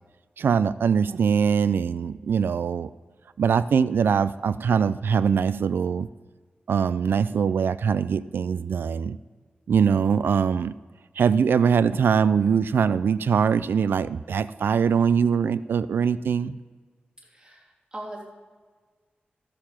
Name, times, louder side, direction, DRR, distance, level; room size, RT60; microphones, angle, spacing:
voice 1, 0.4-2.9 3.4-6.1 6.7-9.2 9.7-10.7 11.2-16.6, right 6 dB, 90° right, 15 dB, 0.3 m, -22 dB
voice 2, 17.2-18.2, right 1 dB, 25° right, -4 dB, 3.3 m, -40 dB
13.0 x 6.8 x 5.7 m, 1.5 s
wide cardioid pair, 125°, 3 cm